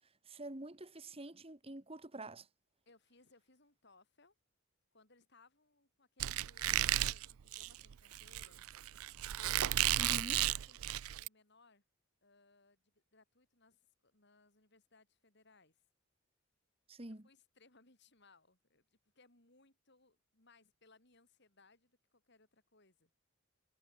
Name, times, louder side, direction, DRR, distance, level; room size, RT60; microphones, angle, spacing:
voice 1, 0.2-2.5 10.0-10.4 16.9-17.3, right 1 dB, 25° right, 1.7 m, -47 dB
voice 2, 2.9-4.3 4.9-8.7 9.3-10.4 10.7-11.8 12.2-15.8 17.1-23.1, left 3 dB, 55° left, 4.7 m, -68 dB
Squeak, 6.2-11.3, right 13 dB, 90° right, 0.5 m, -34 dB
head